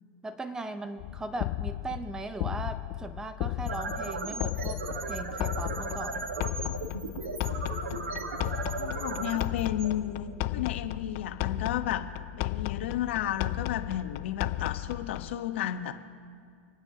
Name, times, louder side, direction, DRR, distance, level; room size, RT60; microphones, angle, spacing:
voice 1, 0.2-6.3, right 2 dB, 10° right, 10 dB, 0.7 m, -38 dB
sound 1, 1.0-15.4, left 16 dB, 45° left, 0.5 m, -35 dB
sound 2, 3.5-10.6, right 3 dB, 85° right, 1.4 m, -36 dB
voice 2, 8.8-12.1 12.4-15.9, left 11 dB, 70° left, 8 dB, 1.1 m, -32 dB
27.5 x 9.7 x 2.9 m, 2.2 s
hypercardioid pair, 115°, 7 cm